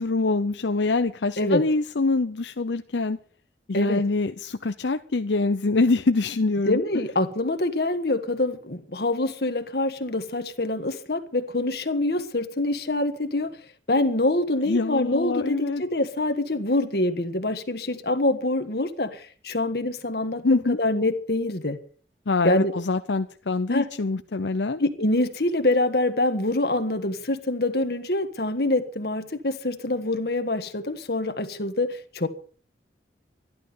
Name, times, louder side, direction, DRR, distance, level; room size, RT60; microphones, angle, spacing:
voice 1, 0.0-3.2 3.7-6.8 14.7-15.8 20.4-20.8 22.3-24.8, left 3 dB, 80° left, 0.7 m, -24 dB
voice 2, 6.7-13.5 13.9-21.8 22.4-22.7 23.7-23.9 24.8-32.3, left 2 dB, 60° left, 1.6 m, -25 dB
13.5 x 12.0 x 6.8 m
head